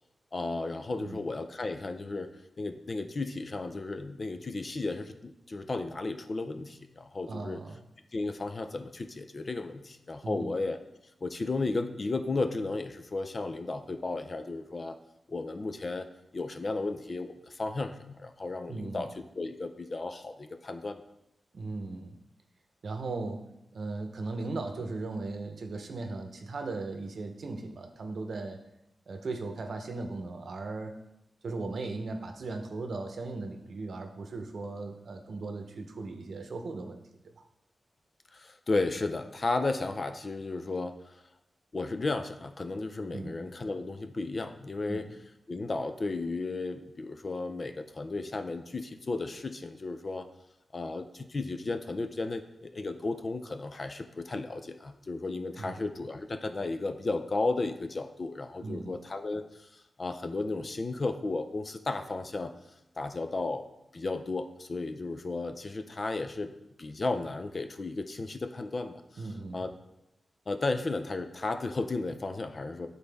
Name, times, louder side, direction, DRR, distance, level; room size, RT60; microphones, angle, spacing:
voice 1, 0.3-2.3 2.6-7.6 8.1-10.8 11.2-15.0 15.3-16.1 16.3-19.1 19.3-21.0 38.3-40.9 41.7-45.1 45.5-50.3 50.7-62.5 63.0-63.7 63.9-66.5 66.8-69.3 69.5-69.7 70.5-72.9, left 3 dB, 40° left, 7 dB, 0.5 m, -34 dB
voice 2, 7.3-7.8 10.2-10.5 18.7-19.1 21.5-22.2 22.8-28.6 29.1-31.0 31.4-37.0 43.1-43.4 44.9-45.0 55.6-55.8 58.6-59.0 69.2-69.6, right 3 dB, 70° right, 5 dB, 0.7 m, -37 dB
9.7 x 4.1 x 3.4 m, 0.88 s
wide cardioid pair, 95°, 0 cm